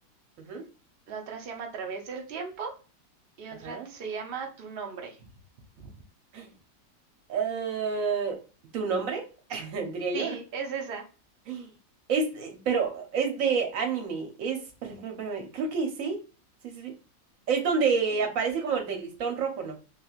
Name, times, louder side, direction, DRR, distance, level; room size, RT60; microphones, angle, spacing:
voice 1, 1.1-2.8 3.4-5.2 5.8-5.9 10.1-11.0 18.1-18.2, right 5 dB, 85° right, 2 dB, 0.5 m, -37 dB
voice 2, 7.3-8.4 8.7-10.4 11.5-11.7 12.1-16.2 16.6-16.9 17.5-19.8, right 5 dB, 60° right, 3 dB, 1.0 m, -29 dB
3.2 x 2.9 x 2.3 m, 0.34 s
omnidirectional pair, 2.0 m